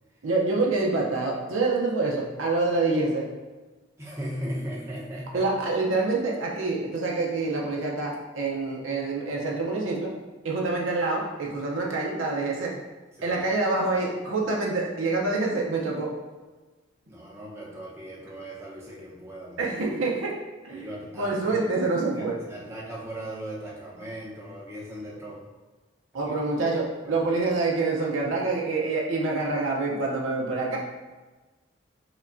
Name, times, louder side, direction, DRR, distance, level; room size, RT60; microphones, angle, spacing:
voice 1, 0.2-3.3 5.3-10.1 10.4-12.7 13.2-16.1 19.6-20.9 21.2-22.4 26.1-30.8, right 3 dB, 90° right, -2 dB, 0.6 m, -26 dB
voice 2, 4.0-5.5 13.2-13.4 17.1-19.6 20.7-21.6 22.2-25.4 26.1-26.2 27.0-27.2, right 1 dB, 15° right, -6 dB, 0.8 m, -38 dB
5.0 x 2.2 x 2.5 m, 1.3 s
head